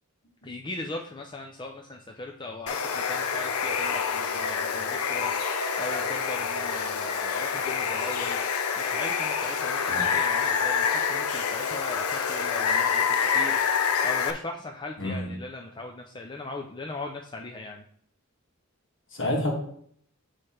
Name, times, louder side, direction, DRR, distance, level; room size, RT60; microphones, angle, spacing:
voice 1, 0.4-8.4 8.8-17.9, left 2 dB, 20° left, 1 dB, 0.4 m, -39 dB
Water, 2.7-14.3, left 6 dB, 90° left, 0.6 m, -27 dB
voice 2, 15.0-15.3 19.1-19.5, left 1 dB, 55° left, 0 dB, 1.7 m, -29 dB
8.2 x 3.2 x 4.4 m, 0.64 s
head